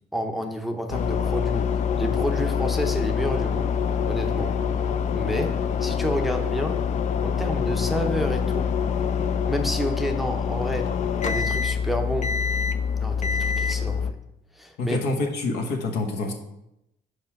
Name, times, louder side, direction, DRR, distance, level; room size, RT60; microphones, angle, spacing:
voice 1, 0.1-1.7 2.0-3.7 4.1-4.6 5.1-6.8 7.2-8.8 9.4-11.0 11.2-12.4 13.0-14.1 14.5-15.0, equal, ahead, 4 dB, 0.6 m, -29 dB
sound 1, 0.9-14.1, left 6 dB, 45° left, 0.4 m, -25 dB
voice 2, 14.8-16.3, left 2 dB, 75° left, 3 dB, 1.2 m, -26 dB
5.5 x 4.8 x 5.9 m, 0.86 s
cardioid pair, 110°, 17 cm